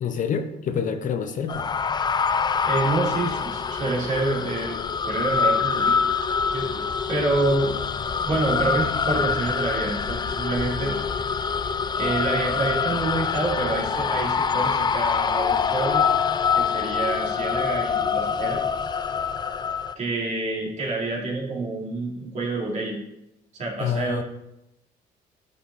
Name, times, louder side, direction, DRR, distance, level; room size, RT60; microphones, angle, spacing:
voice 1, 0.0-1.7 23.8-24.2, left 7 dB, 50° left, 7 dB, 0.9 m, -27 dB
sound 1, 1.5-19.9, left 6 dB, 25° left, 0.4 m, -25 dB
voice 2, 2.6-4.8 5.1-6.0 6.5-7.7 8.2-11.0 12.0-16.1 16.5-18.6 20.0-23.0 23.6-24.2, right 2 dB, 45° right, -2 dB, 2.7 m, -27 dB
9.8 x 5.5 x 4.2 m, 0.86 s
cardioid pair, 110°, 17 cm